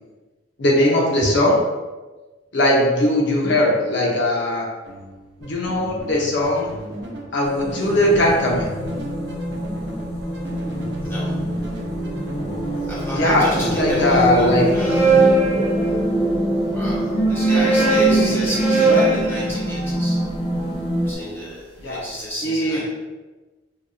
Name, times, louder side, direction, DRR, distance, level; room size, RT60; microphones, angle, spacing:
voice 1, 0.6-1.6 2.5-4.6 5.4-6.7 7.3-8.7 13.2-14.6 17.8-18.5 18.9-19.1 21.8-22.0 22.4-22.8, left 1 dB, 65° left, -3 dB, 0.9 m, -19 dB
sound 1, 4.8-14.8, right 1 dB, 60° right, 0.8 m, -36 dB
sound 2, 7.4-21.1, right 1 dB, 30° left, 0.7 m, -24 dB
voice 2, 11.0-11.4 12.9-15.0 15.9-16.0 16.7-20.2 21.0-22.8, equal, 15° left, -7 dB, 1.2 m, -31 dB
sound 3, 14.5-16.4 17.2-21.3, right 3 dB, 15° right, 0.7 m, -21 dB
4.6 x 2.6 x 2.3 m, 1.2 s
head